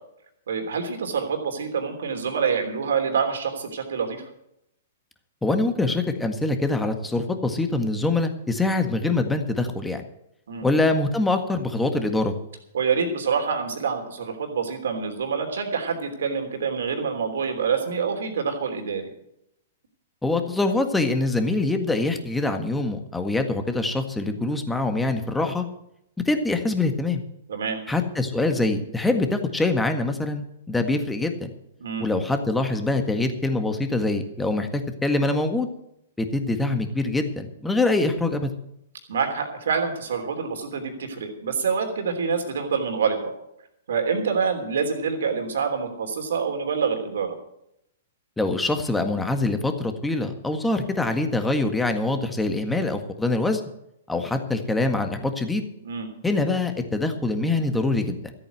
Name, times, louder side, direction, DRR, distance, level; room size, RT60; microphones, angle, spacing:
voice 1, 0.5-4.3 10.5-10.7 12.7-19.1 27.5-27.8 31.8-32.1 39.1-43.3 43.9-47.3 55.8-56.1, right 6 dB, 70° right, 4 dB, 3.1 m, -26 dB
voice 2, 5.4-10.0 10.6-12.3 20.2-25.7 26.2-27.2 27.9-31.5 32.0-35.7 36.2-38.5 48.4-53.6 54.1-55.6 56.2-58.3, left 2 dB, 5° left, 6 dB, 1.7 m, -24 dB
14.0 x 8.8 x 7.8 m, 0.79 s
hypercardioid pair, 120°, 0 cm